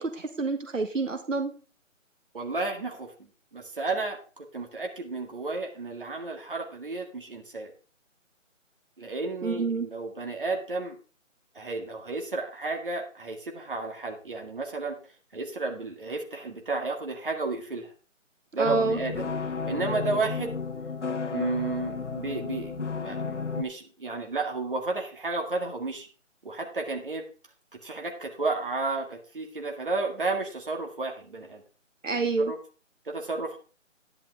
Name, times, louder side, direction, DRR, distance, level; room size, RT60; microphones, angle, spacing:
voice 1, 0.0-1.5 9.4-9.9 18.6-19.0 32.0-32.5, right 3 dB, 70° right, 6 dB, 1.6 m, -27 dB
voice 2, 2.3-7.7 9.0-11.0 11.5-15.0 15.3-17.9 18.5-19.3 19.7-20.6 21.3-26.1 26.4-27.2 27.8-31.6 32.4-32.6 33.1-33.6, right 3 dB, 40° right, 2 dB, 2.0 m, -32 dB
sound 1, 18.6-23.6, left 5 dB, 65° left, 1.1 m, -33 dB
11.0 x 10.5 x 3.5 m, 0.37 s
hypercardioid pair, 180°, 39 cm